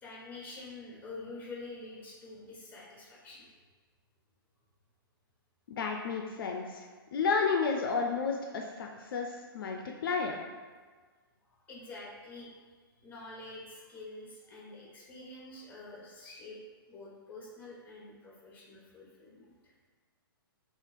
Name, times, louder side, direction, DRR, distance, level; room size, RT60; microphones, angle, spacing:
voice 1, 0.0-3.5 11.7-12.6 13.0-16.6 16.9-19.7, left 2 dB, 15° left, -4 dB, 1.0 m, -47 dB
voice 2, 5.7-10.4, left 5 dB, 65° left, 2 dB, 0.4 m, -32 dB
2.8 x 2.4 x 4.1 m, 1.4 s
hypercardioid pair, 130°, 13 cm